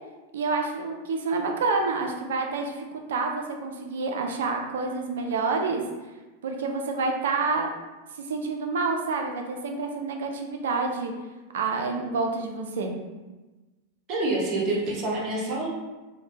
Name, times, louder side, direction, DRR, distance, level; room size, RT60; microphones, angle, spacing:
voice 1, 0.3-5.8 6.4-7.7 8.3-11.1 11.5-12.9, right 4 dB, 60° right, 3 dB, 0.4 m, -28 dB
voice 2, 14.1-15.7, right 2 dB, 35° right, -3 dB, 0.8 m, -27 dB
3.3 x 2.1 x 2.7 m, 1.2 s
figure-of-eight pair, 90°, 0 cm